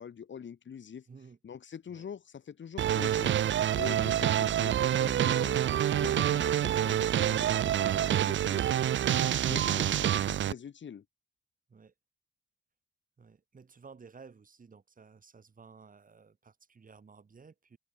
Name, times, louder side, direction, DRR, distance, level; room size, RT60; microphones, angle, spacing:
voice 1, 0.0-1.1 1.4-3.4 3.7-8.7 9.2-11.0, left 7 dB, 85° left, 2.3 m, -44 dB
voice 2, 1.1-1.4 1.9-2.1 11.7-11.9 13.2-17.8, right 5 dB, 45° right, 6.5 m, -54 dB
sound 1, 2.8-10.5, right 11 dB, 90° right, 0.4 m, -27 dB
open air
wide cardioid pair, 175°, 19 cm